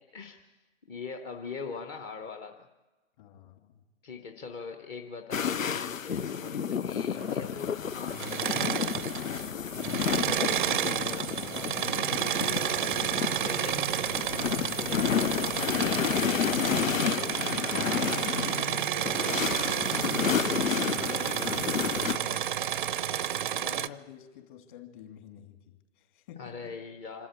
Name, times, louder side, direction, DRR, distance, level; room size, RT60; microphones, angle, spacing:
voice 1, 0.1-0.6 0.9-2.7 4.0-8.8 9.9-11.3 11.7-13.9 14.7-15.8 16.7-17.5 18.3-20.0 22.1-22.4 26.4-27.3, left 5 dB, 15° left, 5 dB, 0.7 m, -42 dB
voice 2, 3.2-3.8 9.7-10.1 22.1-22.5 23.5-26.7, left 10 dB, 40° left, 5 dB, 2.8 m, -49 dB
sound 1, 5.3-22.2, left 7 dB, 90° left, 0.5 m, -31 dB
Engine / Mechanisms, 8.1-9.4 9.7-23.9, right 10 dB, 40° right, 0.6 m, -31 dB
26.5 x 13.0 x 8.2 m, 1.2 s
figure-of-eight pair, 125°, 39 cm